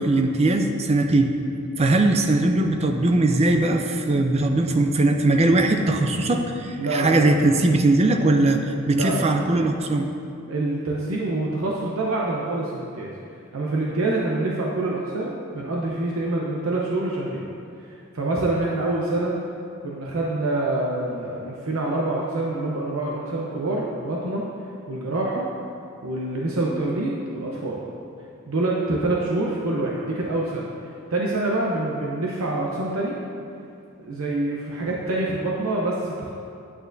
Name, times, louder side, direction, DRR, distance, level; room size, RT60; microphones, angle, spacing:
voice 1, 0.0-1.3 1.8-10.1, right 2 dB, 30° right, 5 dB, 0.5 m, -20 dB
voice 2, 6.8-7.3 8.9-9.3 10.5-13.1 13.5-17.5 17.9-19.4 19.8-24.5 24.9-25.5 26.0-27.8 28.5-30.7 31.1-33.2 34.0-36.3, right 2 dB, 80° right, -3 dB, 0.8 m, -26 dB
8.8 x 8.7 x 2.6 m, 2.5 s
head